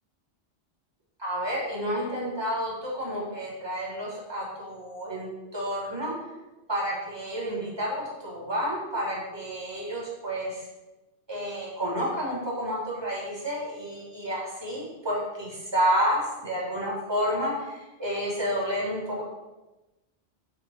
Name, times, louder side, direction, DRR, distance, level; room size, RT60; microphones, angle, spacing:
voice 1, 1.2-6.1 6.7-10.7 11.3-19.2, equal, 20° right, -6 dB, 3.4 m, -30 dB
9.7 x 4.8 x 7.9 m, 1.1 s
omnidirectional pair, 1.1 m